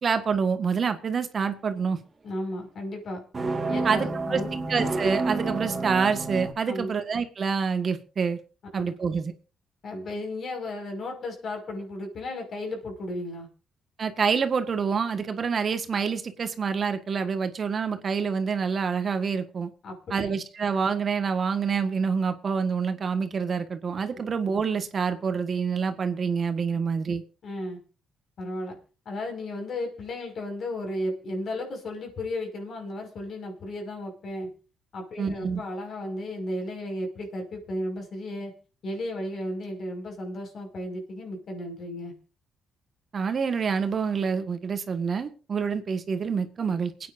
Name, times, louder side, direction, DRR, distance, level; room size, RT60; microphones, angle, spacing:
voice 1, 0.0-2.0 3.8-4.4 4.7-8.4 8.7-9.3 14.0-19.7 20.1-27.2 35.2-35.6 43.1-46.9, right 5 dB, 45° right, 8 dB, 1.6 m, -27 dB
voice 2, 2.2-3.2 3.7-4.5 6.7-6.9 8.7-9.0 9.8-13.5 19.8-20.0 27.4-27.8 28.4-28.8 29.1-34.5 34.9-38.5 38.8-42.1, left 1 dB, 55° left, 4 dB, 5.7 m, -34 dB
sound 1, 3.3-6.5, right 3 dB, 30° right, 2.4 m, -29 dB
27.5 x 9.5 x 2.7 m, 0.34 s
cardioid pair, 90°, 0 cm